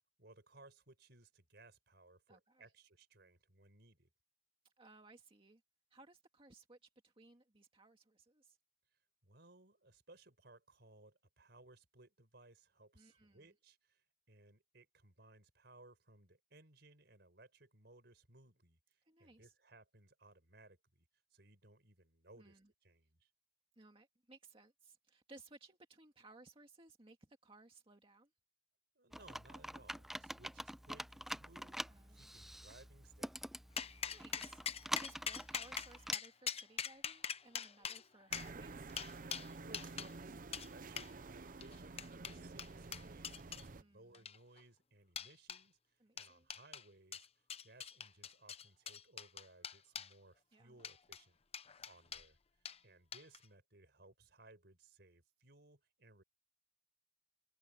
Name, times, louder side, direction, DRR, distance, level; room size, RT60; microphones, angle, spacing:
voice 1, 0.2-4.1 9.2-21.1 21.3-23.3 29.0-31.8 32.1-33.4 39.6-47.3 47.6-51.4 51.8-52.4 52.8-56.2, right 2 dB, 65° right, 5.4 m, -63 dB
voice 2, 2.3-2.7 4.6-5.6 5.9-8.6 12.9-13.5 19.1-19.5 22.4-22.7 23.8-28.3 31.9-32.3 34.1-34.6 35.0-38.9 43.8-44.2 46.0-46.5 50.5-50.8, right 2 dB, 30° right, 2.0 m, -61 dB
Computer keyboard, 29.1-36.1, equal, ahead, 0.4 m, -46 dB
sound 1, 33.8-40.1 40.5-40.7 41.0-41.1 41.6-43.6 44.1-44.6 45.2-45.6 46.2-46.8 47.1-50.1 50.8-51.2 51.5-52.3 52.6-52.8 53.1-53.4, left 7 dB, 35° left, 0.8 m, -43 dB
sound 2, 38.3-43.8, right 3 dB, 50° right, 0.7 m, -50 dB
head